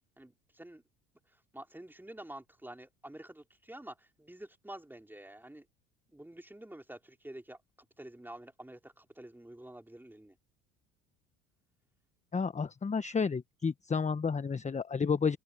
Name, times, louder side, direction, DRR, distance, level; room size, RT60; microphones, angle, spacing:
voice 1, 0.2-0.8 1.5-5.7 6.1-7.6 8.0-10.3, right 1 dB, 5° right, 4.2 m, -48 dB
voice 2, 12.3-15.4, left 5 dB, 20° left, 1.1 m, -31 dB
open air
hypercardioid pair, 70°, 35 cm